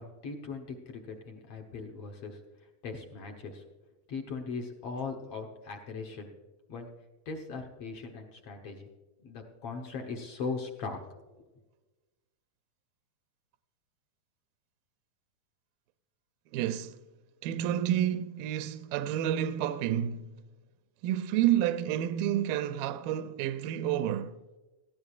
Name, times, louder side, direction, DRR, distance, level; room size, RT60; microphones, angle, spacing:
voice 1, 0.0-2.4 2.8-3.6 4.1-6.3 6.7-6.9 7.3-8.9 9.2-11.0, left 4 dB, 65° left, 1.6 m, -39 dB
voice 2, 16.5-17.0 17.4-20.4 21.0-24.4, right 11 dB, 80° right, 2.1 m, -29 dB
19.0 x 14.5 x 2.4 m
omnidirectional pair, 4.2 m